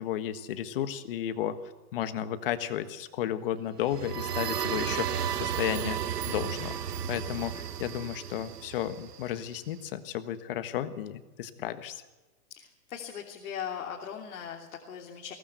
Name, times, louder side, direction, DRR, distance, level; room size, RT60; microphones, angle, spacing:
voice 1, 0.0-6.0 6.3-6.8 7.1-12.0, left 11 dB, 35° left, 10 dB, 1.5 m, -33 dB
sound 1, 3.8-9.5, right 9 dB, 85° right, 1.6 m, -33 dB
voice 2, 12.5-15.3, left 8 dB, 65° left, 0 dB, 3.2 m, -39 dB
22.5 x 18.5 x 8.1 m, 1.2 s
hypercardioid pair, 170°, 46 cm